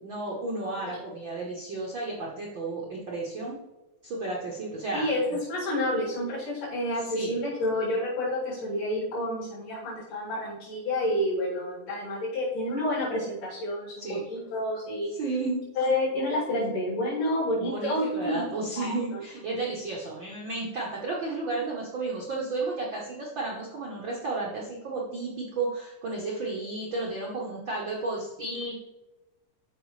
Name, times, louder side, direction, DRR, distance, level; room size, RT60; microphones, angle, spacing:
voice 1, 0.0-3.6 4.0-5.4 7.0-7.4 14.0-14.2 15.1-15.6 17.6-28.8, right 3 dB, 80° right, -3 dB, 1.0 m, -33 dB
voice 2, 4.9-15.1 15.8-18.5 18.8-19.2, left 1 dB, 70° left, -8 dB, 4.4 m, -29 dB
12.5 x 5.1 x 3.2 m, 1.0 s
omnidirectional pair, 3.9 m